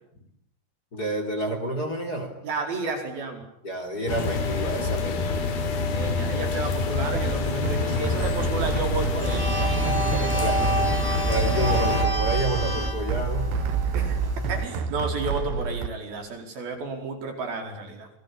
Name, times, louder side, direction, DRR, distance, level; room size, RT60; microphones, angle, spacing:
voice 1, 0.9-2.3 3.6-5.8 10.1-13.5, right 1 dB, 25° left, 6 dB, 3.5 m, -30 dB
voice 2, 2.4-3.4 5.9-9.9 10.4-10.7 13.9-14.2 14.5-18.1, right 2 dB, 70° right, 4 dB, 6.6 m, -32 dB
sound 1, 4.1-12.1, left 4 dB, 75° left, 4.7 m, -27 dB
sound 2, 7.1-15.9, right 9 dB, 85° right, 3.6 m, -30 dB
sound 3, 9.2-14.6, right 1 dB, 5° left, 1.8 m, -27 dB
27.5 x 21.5 x 8.7 m, 0.72 s
omnidirectional pair, 4.5 m